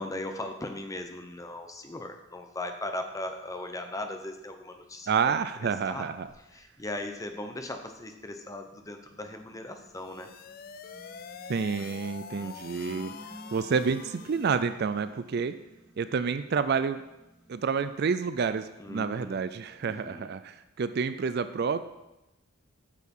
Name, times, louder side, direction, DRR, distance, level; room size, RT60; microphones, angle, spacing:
voice 1, 0.0-5.1 5.6-6.1 6.5-10.3 12.3-13.2 18.8-19.5 19.8-20.3, left 1 dB, 15° left, 5 dB, 0.7 m, -38 dB
voice 2, 5.1-6.3 11.5-13.1 13.5-15.5 16.0-17.0 17.5-21.8, right 5 dB, 50° right, 12 dB, 0.4 m, -29 dB
sound 1, 6.1-8.4 9.0-20.3, right 1 dB, 20° right, 2.7 m, -54 dB
sound 2, 9.9-14.7, left 6 dB, 45° left, 0.4 m, -45 dB
8.3 x 6.6 x 5.4 m, 0.96 s
head